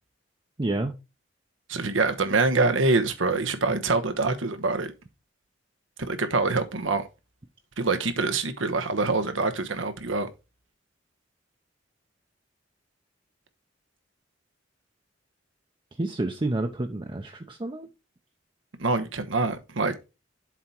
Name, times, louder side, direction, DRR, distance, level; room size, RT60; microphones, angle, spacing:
voice 1, 0.6-0.9 16.0-17.9, right 2 dB, 25° right, 0.7 m, -29 dB
voice 2, 1.7-4.9 6.0-7.1 7.8-10.3 18.8-19.9, right 3 dB, 90° right, 1.1 m, -25 dB
7.5 x 4.2 x 4.5 m
head